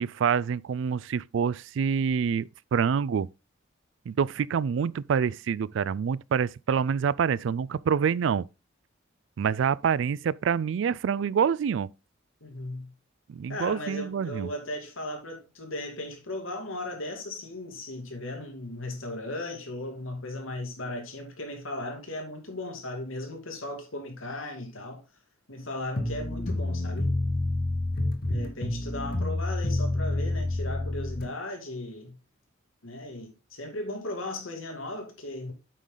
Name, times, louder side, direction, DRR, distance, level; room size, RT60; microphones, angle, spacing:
voice 1, 0.0-3.3 4.1-8.5 9.4-11.9 13.3-14.5, right 7 dB, 65° right, 0.3 m, -26 dB
voice 2, 12.4-12.9 13.5-25.0 25.5-27.1 28.3-32.1 32.8-35.5, left 1 dB, 90° left, 2.5 m, -37 dB
sound 1, 25.9-31.3, left 2 dB, 50° left, 1.4 m, -28 dB
8.3 x 5.6 x 3.8 m
head